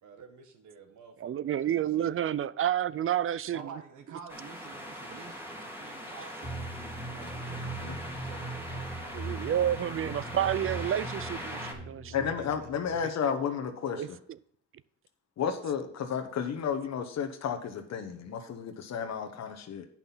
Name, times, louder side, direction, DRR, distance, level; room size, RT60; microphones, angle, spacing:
voice 1, 0.0-2.3 3.5-6.4 7.0-7.8 8.0-9.6 12.4-12.7 13.0-13.1, right 6 dB, 75° right, 1.8 m, -50 dB
voice 2, 1.2-3.6 9.1-12.1 13.9-14.1, right 10 dB, 45° right, 0.5 m, -29 dB
sound 1, 4.3-11.7, equal, 5° right, 2.3 m, -41 dB
sound 2, 6.4-13.0, right 2 dB, 10° left, 2.4 m, -40 dB
voice 3, 12.1-14.2 15.4-19.9, left 7 dB, 60° left, 1.1 m, -32 dB
8.9 x 5.9 x 5.6 m
cardioid pair, 90°, 30 cm